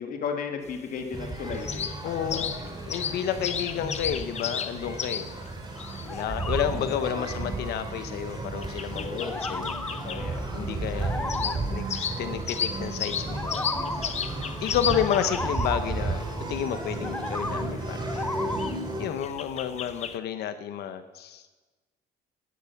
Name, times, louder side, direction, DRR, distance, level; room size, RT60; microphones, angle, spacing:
voice 1, 0.0-2.7 6.7-7.3 8.9-9.4 10.0-10.4, left 6 dB, 55° left, 4 dB, 1.8 m, -35 dB
sound 1, 0.6-20.2, left 7 dB, 40° left, 1.0 m, -36 dB
sound 2, 1.1-19.1, right 2 dB, 25° right, 2.9 m, -34 dB
voice 2, 2.0-2.6 2.9-5.3 6.1-9.7 10.5-13.7 14.0-14.1 14.6-18.3 19.0-21.5, left 9 dB, 75° left, 10 dB, 1.0 m, -31 dB
sound 3, 5.8-7.7 8.1-8.4 8.9-13.0 13.3-19.0, left 2 dB, 10° left, 0.8 m, -36 dB
18.5 x 10.5 x 5.9 m, 1.2 s
cardioid pair, 110°, 17 cm